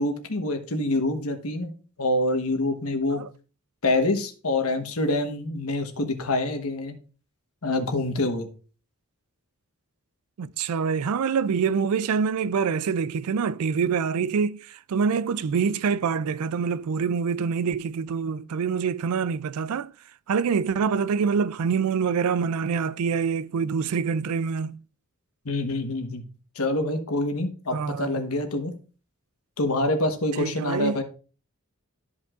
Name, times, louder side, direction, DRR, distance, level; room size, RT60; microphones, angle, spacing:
voice 1, 0.0-1.7 2.0-3.2 3.8-7.0 7.6-8.5 25.4-26.2 26.5-28.7 29.6-31.0, left 2 dB, 75° left, 1.2 m, -26 dB
voice 2, 10.4-19.9 20.3-24.8 27.7-28.3 30.4-31.0, right 6 dB, 85° right, 0.4 m, -25 dB
12.5 x 5.3 x 2.5 m
head